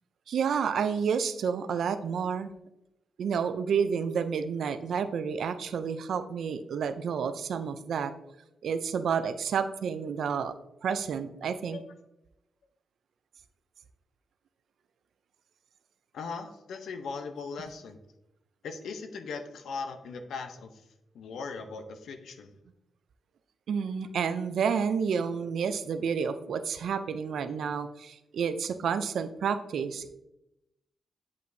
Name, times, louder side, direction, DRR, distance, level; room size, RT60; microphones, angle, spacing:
voice 1, 0.3-2.5 3.2-8.1 8.6-10.5 10.8-11.8 23.7-30.1, right 6 dB, 75° right, 10 dB, 0.4 m, -30 dB
voice 2, 16.1-18.0 18.6-20.8 21.1-22.5, left 4 dB, 90° left, 6 dB, 0.7 m, -39 dB
8.1 x 5.2 x 2.7 m, 0.88 s
cardioid pair, 105°, 0 cm